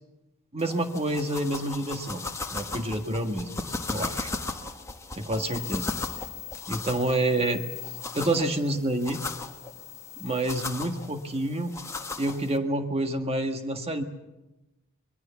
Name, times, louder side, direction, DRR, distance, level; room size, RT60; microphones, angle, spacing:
voice 1, 0.5-2.2 2.5-3.5 3.9-4.3 5.1-5.9 6.7-7.6 8.1-9.2 10.2-11.7 12.2-14.0, right 1 dB, 30° right, 6 dB, 1.7 m, -28 dB
sound 1, 0.6-12.6, left 3 dB, 15° left, 1.4 m, -37 dB
sound 2, 8.8-10.4, left 14 dB, 30° left, 4.0 m, -42 dB
25.5 x 21.5 x 7.1 m, 1.0 s
head